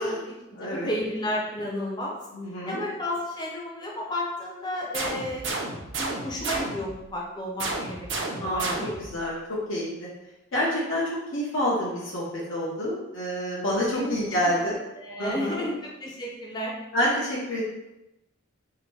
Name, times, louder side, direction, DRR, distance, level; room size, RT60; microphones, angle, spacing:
voice 1, 0.0-2.2 2.7-5.5 5.8-8.9 13.9-14.2 14.5-16.7, left 1 dB, 20° left, -2 dB, 0.6 m, -33 dB
voice 2, 0.6-0.9 2.3-2.8 8.4-8.7 9.0-10.1 10.5-14.8 15.2-15.7 16.9-17.6, equal, 65° left, -6 dB, 0.8 m, -28 dB
sound 1, 4.9-7.0 7.6-9.2, right 2 dB, 60° right, 0.6 m, -32 dB
2.9 x 2.6 x 4.3 m, 0.96 s
head